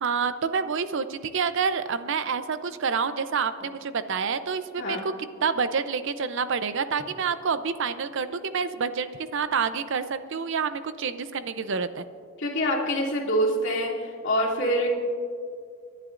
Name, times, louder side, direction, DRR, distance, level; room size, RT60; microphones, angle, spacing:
voice 1, 0.0-5.1 5.4-12.0, right 5 dB, 65° right, 12 dB, 0.6 m, -28 dB
voice 2, 12.4-13.9 14.2-14.9, equal, 65° left, -3 dB, 2.5 m, -25 dB
29.5 x 11.0 x 2.5 m, 2.2 s
head